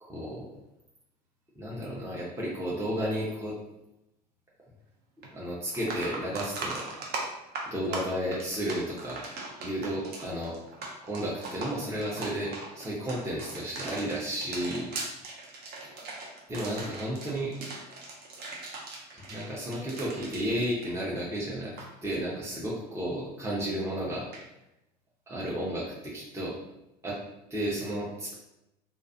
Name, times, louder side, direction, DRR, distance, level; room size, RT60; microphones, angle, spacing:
voice 1, 0.0-0.5 1.6-3.6 5.3-6.8 7.7-9.2 9.6-10.6 11.1-14.9 16.5-17.5 19.3-24.3 25.3-26.5 27.0-27.2 27.5-28.4, equal, 15° right, -6 dB, 0.7 m, -33 dB
sound 1, 5.2-5.3 5.7-21.4 21.6-21.9 24.3-24.4, right 3 dB, 50° right, 0.6 m, -39 dB
2.4 x 2.3 x 2.5 m, 0.89 s
hypercardioid pair, 70°, 21 cm